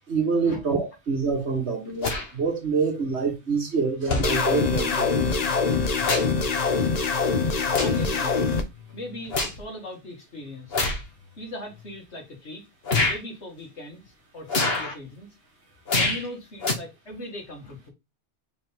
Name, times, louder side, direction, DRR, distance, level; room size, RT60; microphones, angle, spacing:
voice 1, 0.1-5.2, right 5 dB, 75° right, 2.1 m, -26 dB
sound 1, 2.0-2.3 3.3-3.4 4.1-4.4 5.6-6.4 6.8-7.0 7.7-8.1 8.5-9.6 10.7-11.1 11.8-11.9 12.9-13.2 14.5-14.9 15.9-16.3 16.6-16.7, left 2 dB, 60° left, 1.5 m, -26 dB
sound 2, 4.2-8.6, left 4 dB, 40° left, 0.9 m, -24 dB
voice 2, 7.8-8.4 8.9-10.8 11.4-12.7 13.0-15.3 15.9-17.9, left 1 dB, 80° left, 2.5 m, -39 dB
5.6 x 4.5 x 3.7 m
omnidirectional pair, 1.1 m